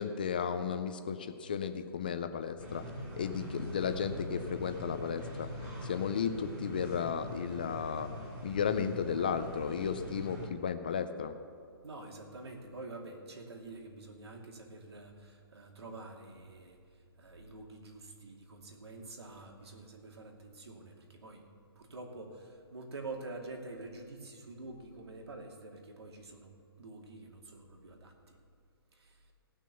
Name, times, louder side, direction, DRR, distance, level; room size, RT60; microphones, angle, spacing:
voice 1, 0.0-2.8 3.2-5.5 5.8-8.1 8.4-11.3, left 7 dB, 20° left, 9 dB, 0.4 m, -34 dB
sound 1, 2.6-10.5, equal, 20° right, 2.1 m, -43 dB
voice 2, 11.8-21.4 21.7-28.4 28.9-29.3, right 2 dB, 85° right, 1 dB, 2.5 m, -47 dB
18.0 x 6.2 x 6.9 m, 2.3 s
hypercardioid pair, 175°, 13 cm